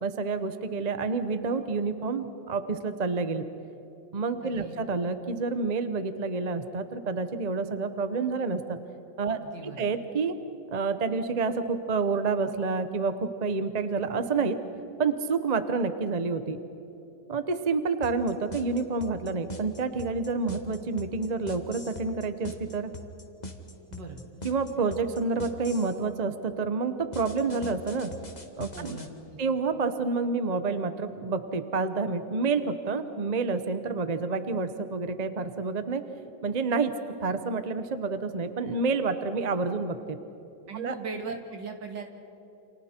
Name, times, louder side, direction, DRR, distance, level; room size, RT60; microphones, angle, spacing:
voice 1, 0.0-3.5 4.1-8.8 9.2-10.3 10.7-14.6 15.0-16.6 17.3-22.9 24.4-28.1 28.6-29.0 29.4-36.0 36.4-36.9 37.2-40.2 40.7-40.9, right 4 dB, 35° right, 9 dB, 0.7 m, -29 dB
voice 2, 4.4-4.8 9.4-9.9 23.9-24.2 28.7-29.4 40.7-42.0, right 4 dB, 70° right, 4 dB, 2.6 m, -39 dB
sound 1, 18.0-26.0 27.1-29.1, left 2 dB, 25° left, 1.5 m, -41 dB
29.5 x 28.0 x 4.4 m, 2.9 s
omnidirectional pair, 2.0 m